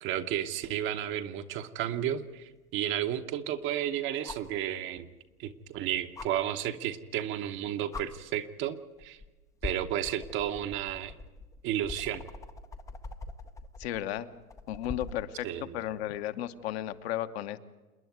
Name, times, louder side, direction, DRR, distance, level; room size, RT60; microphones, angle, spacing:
voice 1, 0.0-5.1 5.4-9.2 9.6-11.1 11.6-12.2 15.4-15.6, right 11 dB, 25° right, 9 dB, 0.9 m, -32 dB
sound 1, 2.0-2.1 4.2-4.6 6.2-6.3 7.4-7.5 7.9-8.1 9.0-9.3 9.6-15.3 16.9-17.0, left 3 dB, 5° left, 0.6 m, -42 dB
voice 2, 13.8-14.3 14.7-17.6, left 12 dB, 45° left, 9 dB, 1.1 m, -34 dB
27.5 x 10.0 x 9.4 m, 1.2 s
hypercardioid pair, 125°, 44 cm